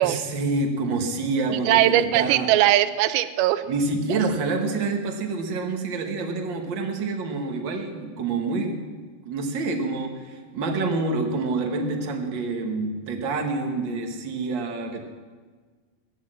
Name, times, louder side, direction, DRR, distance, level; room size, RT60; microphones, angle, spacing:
voice 1, 0.0-2.5 3.7-9.0 9.2-15.0, right 3 dB, 70° right, 2 dB, 1.1 m, -27 dB
voice 2, 1.7-3.6, right 13 dB, 90° right, 12 dB, 2.5 m, -20 dB
17.0 x 9.9 x 7.5 m, 1.5 s
omnidirectional pair, 4.3 m